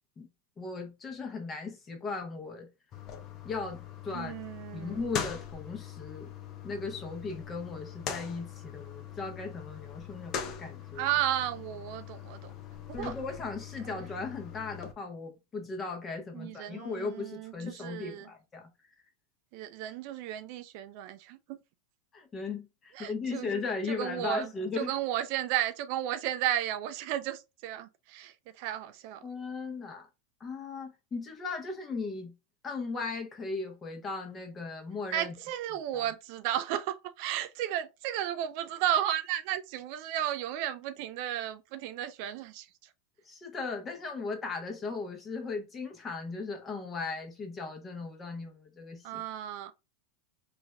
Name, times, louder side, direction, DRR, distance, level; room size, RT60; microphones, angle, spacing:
voice 1, 0.6-2.7 3.4-4.3 4.7-6.3 6.6-11.1 12.9-18.7 22.1-24.9 29.2-30.1 30.4-32.3 32.6-35.3 35.9-36.0 43.3-49.2, left 4 dB, 25° left, 1.0 m, -37 dB
sound 1, 2.9-14.9, left 8 dB, 40° left, 0.7 m, -42 dB
voice 2, 4.1-5.0 11.0-12.5 12.9-13.1 13.8-14.0 16.3-18.3 19.5-21.6 22.9-23.5 23.9-24.5 24.8-29.2 35.1-42.7 49.0-49.7, right 11 dB, 60° right, 0.4 m, -33 dB
3.9 x 2.5 x 2.2 m
hypercardioid pair, 110°, 0 cm